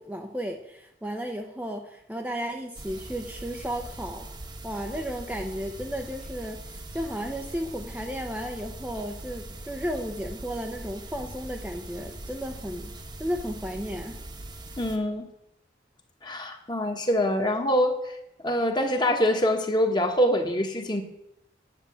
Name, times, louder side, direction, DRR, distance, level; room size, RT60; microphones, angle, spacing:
voice 1, 0.0-4.2 4.6-14.2, equal, 5° right, 2 dB, 0.7 m, -34 dB
sound 1, 2.7-15.0, right 1 dB, 25° right, 1.1 m, -41 dB
voice 2, 14.8-15.3 16.2-18.2 18.4-21.0, equal, 25° left, 4 dB, 1.4 m, -25 dB
9.8 x 7.0 x 8.5 m, 0.81 s
head